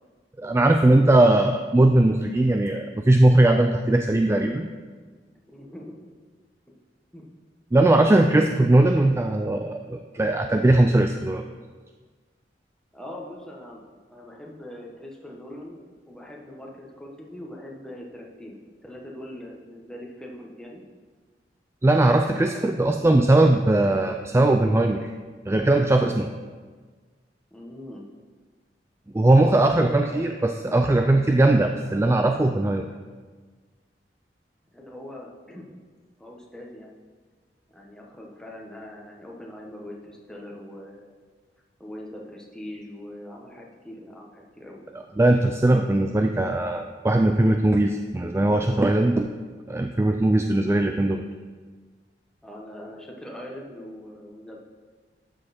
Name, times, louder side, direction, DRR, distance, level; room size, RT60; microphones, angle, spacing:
voice 1, 0.4-4.7 7.7-11.4 21.8-25.1 25.5-26.3 29.1-32.9 45.2-49.3 49.7-51.2, right 2 dB, 15° right, 5 dB, 0.3 m, -19 dB
voice 2, 5.5-6.0 7.1-7.2 12.9-13.8 14.1-15.8 16.1-20.8 22.5-23.0 27.5-28.0 29.3-30.6 31.8-32.0 34.7-35.7 36.2-36.9 37.7-41.1 41.8-44.8 52.4-54.6, left 1 dB, 5° left, -2 dB, 1.3 m, -41 dB
12.5 x 6.4 x 4.3 m, 1.5 s
head